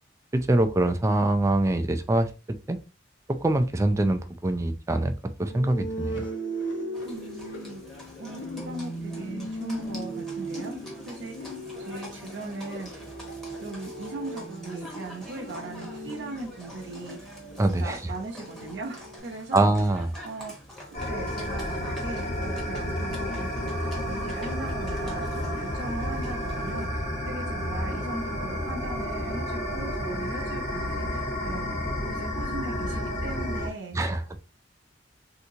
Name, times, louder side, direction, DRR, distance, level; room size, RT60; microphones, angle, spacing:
voice 1, 0.3-2.3 2.7-2.8 3.3-5.1 5.4-6.2 17.6-18.0 19.5-20.1 33.9-34.4, right 2 dB, 15° right, 8 dB, 0.3 m, -24 dB
sound 1, 5.5-19.2, right 1 dB, 80° left, 1.0 m, -38 dB
Livestock farm animals working animals, 6.9-26.9, equal, ahead, 1.0 m, -46 dB
voice 2, 7.0-7.8 8.2-10.8 11.1-11.5 11.8-13.0 13.6-17.3 17.8-19.7 20.2-20.5 20.9-34.4, right 3 dB, 65° right, -1 dB, 0.8 m, -39 dB
sound 2, 20.9-33.7, left 1 dB, 35° left, 1.1 m, -31 dB
3.4 x 2.9 x 2.7 m, 0.30 s
head